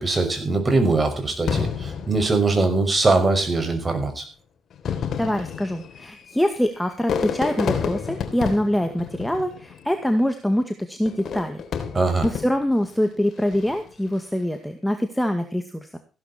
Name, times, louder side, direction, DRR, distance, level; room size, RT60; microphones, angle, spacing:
voice 1, 0.0-4.2 11.9-12.2, right 3 dB, 25° right, 7 dB, 6.0 m, -21 dB
Fireworks, 1.5-3.1 3.9-4.0 4.7-10.0 11.1-12.8 13.4-13.9, left 7 dB, 60° left, 3.3 m, -30 dB
voice 2, 5.2-11.6 12.2-16.0, equal, 5° left, 6 dB, 2.0 m, -24 dB
16.0 x 12.0 x 4.3 m, 0.33 s
cardioid pair, 90°, 0 cm